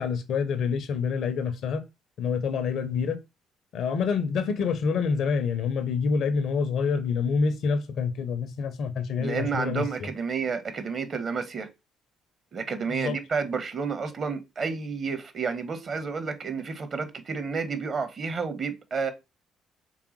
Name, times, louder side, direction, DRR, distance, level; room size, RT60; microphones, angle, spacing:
voice 1, 0.0-1.8 2.2-3.2 3.7-10.1 12.9-13.2, left 5 dB, 55° left, 0.6 m, -27 dB
voice 2, 9.2-11.7 12.5-19.1, right 5 dB, 40° right, 0.9 m, -30 dB
4.6 x 3.6 x 3.0 m
figure-of-eight pair, 45°, 0 cm